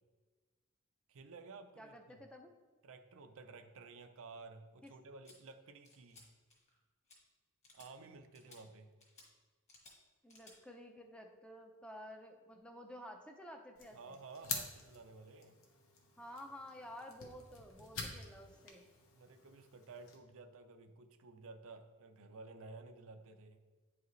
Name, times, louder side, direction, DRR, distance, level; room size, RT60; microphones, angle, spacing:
voice 1, 1.1-2.2 2.8-6.3 7.7-8.9 13.9-15.6 19.1-23.6, right 3 dB, 65° right, 7 dB, 0.5 m, -54 dB
voice 2, 1.8-2.5 4.8-4.9 10.2-14.2 16.2-18.8, equal, 5° left, 3 dB, 0.5 m, -52 dB
sound 1, 5.2-5.4 5.8-6.2 6.5-6.8 7.1-7.2 7.6-7.9 8.3-8.6 9.0-9.3 9.7-9.9 10.3-10.6, left 2 dB, 30° left, 1.6 m, -60 dB
sound 2, 13.8-20.2, left 4 dB, 65° left, 1.0 m, -48 dB
8.9 x 4.8 x 3.2 m, 1.4 s
head